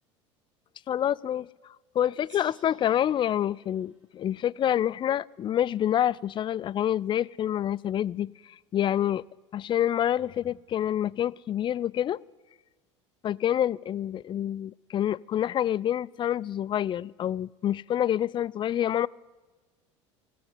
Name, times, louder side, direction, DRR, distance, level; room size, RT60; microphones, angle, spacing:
voice 1, 0.9-1.5 1.9-9.2 9.5-12.2 13.2-19.1, left 11 dB, 30° left, 19 dB, 0.4 m, -27 dB
Gong, 2.2-5.4, right 3 dB, 90° right, 1.6 m, -60 dB
16.5 x 8.6 x 9.4 m, 1.3 s
hypercardioid pair, 75°, 16 cm